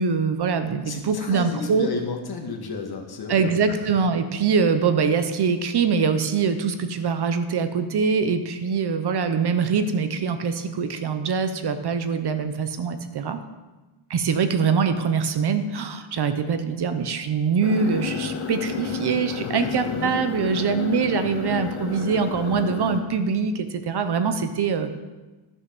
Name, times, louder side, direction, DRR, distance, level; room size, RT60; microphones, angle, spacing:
voice 1, 0.0-1.9 3.3-13.4 14.1-25.0, right 5 dB, 55° right, 9 dB, 1.0 m, -23 dB
voice 2, 0.9-3.7 19.3-20.1, left 4 dB, 50° left, 2 dB, 1.9 m, -32 dB
Boiling water, 17.6-23.0, left 6 dB, 75° left, 1.9 m, -31 dB
13.5 x 6.4 x 6.2 m, 1.2 s
cardioid pair, 130°, 49 cm